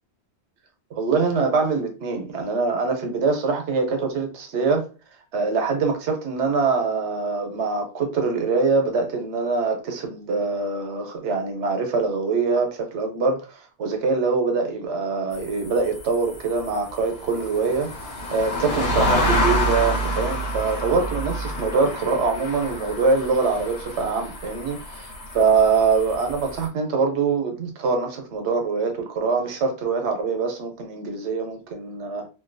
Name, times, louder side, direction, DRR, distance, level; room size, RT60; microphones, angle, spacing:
voice 1, 0.9-4.9 5.3-17.9 18.3-32.3, right 4 dB, 90° right, 1.0 m, -24 dB
sound 1, 15.3-26.7, equal, 65° left, 1.1 m, -28 dB
2.7 x 2.2 x 2.5 m
omnidirectional pair, 1.1 m